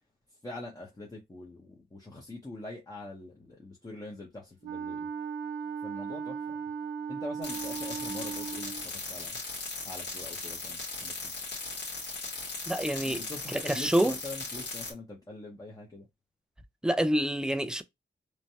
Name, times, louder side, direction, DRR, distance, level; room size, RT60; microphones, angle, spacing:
voice 1, 0.4-5.1 5.8-6.6 7.1-9.4 9.8-11.3 12.9-16.1, left 2 dB, 20° left, 0.8 m, -44 dB
Wind instrument woodwind instrument, 4.6-8.9, right 6 dB, 85° right, 0.8 m, -37 dB
sound 1, 7.4-14.9, left 3 dB, 60° left, 1.4 m, -38 dB
voice 2, 12.7-13.2 13.5-14.1 16.8-17.8, right 1 dB, 5° right, 0.3 m, -27 dB
3.1 x 2.2 x 2.7 m
wide cardioid pair, 90°, 20 cm